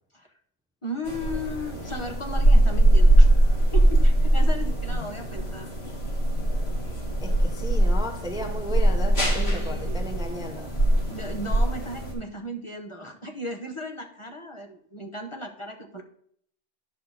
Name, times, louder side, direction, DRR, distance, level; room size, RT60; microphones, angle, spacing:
voice 1, 0.8-3.3 3.7-5.7 9.2-10.1 11.1-16.0, equal, 25° left, 2 dB, 1.1 m, -36 dB
sound 1, 1.1-12.1, right 1 dB, 60° left, 2.5 m, -21 dB
voice 2, 7.2-10.7, equal, 5° right, 3 dB, 0.9 m, -35 dB
10.5 x 6.5 x 4.1 m, 0.64 s
omnidirectional pair, 1.2 m